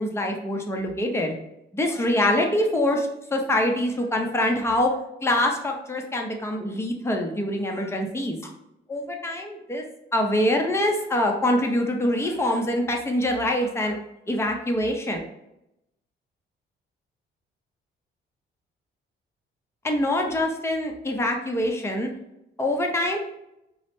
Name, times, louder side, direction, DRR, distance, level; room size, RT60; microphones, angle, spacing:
voice 1, 0.0-1.3 1.7-4.9 5.2-8.4 8.9-9.8 10.1-14.0 14.3-15.2 19.8-22.1 22.6-23.2, left 1 dB, 15° left, 2 dB, 0.7 m, -24 dB
5.4 x 2.1 x 3.1 m, 0.85 s
cardioid pair, 90°, 20 cm